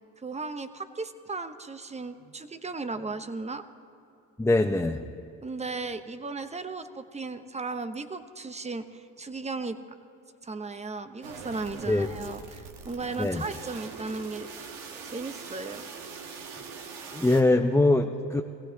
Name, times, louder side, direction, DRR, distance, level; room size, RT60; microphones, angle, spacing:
voice 1, 0.0-3.6 5.4-9.8 10.4-14.5 15.0-15.9, right 3 dB, 15° right, 10 dB, 0.9 m, -36 dB
voice 2, 4.4-5.0 11.9-12.1 13.2-13.5 16.5-16.6 17.1-18.4, left 2 dB, 5° left, 3 dB, 0.6 m, -23 dB
sound 1, 11.2-17.4, right 5 dB, 85° right, 1.3 m, -42 dB
21.5 x 16.0 x 2.9 m, 2.7 s
supercardioid pair, 70°, 40 cm